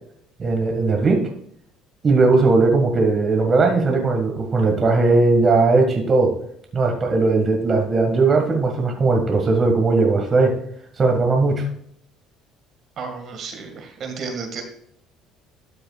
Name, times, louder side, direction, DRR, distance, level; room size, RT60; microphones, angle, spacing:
voice 1, 0.4-1.2 2.0-6.4 6.7-10.6 10.9-11.7, right 3 dB, 35° right, 2 dB, 1.7 m, -18 dB
voice 2, 13.0-14.6, right 5 dB, 50° right, 5 dB, 1.8 m, -32 dB
12.5 x 6.5 x 2.4 m, 0.69 s
supercardioid pair, 100°, 0 cm